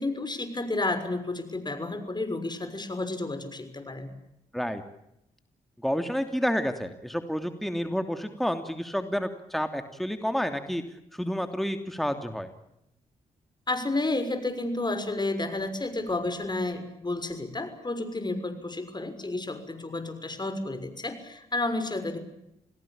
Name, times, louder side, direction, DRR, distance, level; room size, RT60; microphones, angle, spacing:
voice 1, 0.0-4.1 13.7-22.2, left 2 dB, 30° left, 9 dB, 6.3 m, -31 dB
voice 2, 5.8-10.8 11.1-12.5, equal, ahead, 7 dB, 3.0 m, -29 dB
28.5 x 18.0 x 8.9 m, 0.82 s
supercardioid pair, 45°, 16 cm